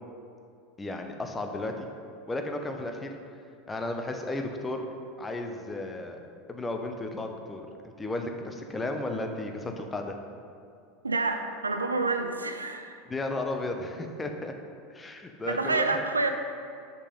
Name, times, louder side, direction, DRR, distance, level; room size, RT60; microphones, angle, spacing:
voice 1, 0.8-1.9 2.3-3.2 3.7-4.8 5.2-6.2 6.5-10.1 13.1-14.5 14.9-16.0, left 2 dB, 15° left, 4 dB, 0.8 m, -34 dB
voice 2, 11.0-13.0 15.5-16.3, right 3 dB, 85° right, 7 dB, 0.5 m, -28 dB
6.8 x 5.4 x 5.4 m, 2.4 s
figure-of-eight pair, 80°, 0 cm